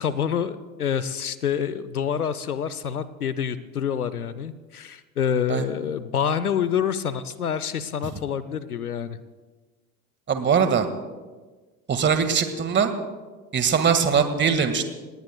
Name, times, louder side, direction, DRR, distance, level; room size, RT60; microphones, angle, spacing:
voice 1, 0.0-9.2, left 8 dB, 80° left, 16 dB, 0.8 m, -27 dB
voice 2, 10.3-10.9 11.9-12.9 13.5-14.8, right 6 dB, 25° right, 8 dB, 1.7 m, -21 dB
28.5 x 18.5 x 2.2 m, 1.3 s
figure-of-eight pair, 70°, 44 cm